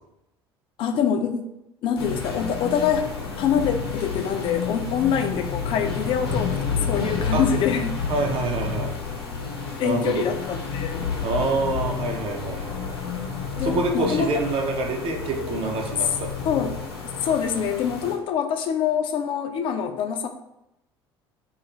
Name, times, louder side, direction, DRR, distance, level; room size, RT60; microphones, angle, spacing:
voice 1, 0.8-1.5 1.8-3.0 3.4-8.0 9.8-11.1 13.6-14.3 16.4-16.8 17.2-20.3, left 7 dB, 40° left, 6 dB, 0.4 m, -25 dB
sound 1, 2.0-18.1, left 5 dB, 75° left, 0.7 m, -30 dB
voice 2, 8.1-8.9 9.8-10.2 11.2-12.8 13.6-16.3, right 3 dB, 40° right, 2 dB, 0.5 m, -26 dB
2.4 x 2.4 x 3.0 m, 0.85 s
figure-of-eight pair, 60°, 13 cm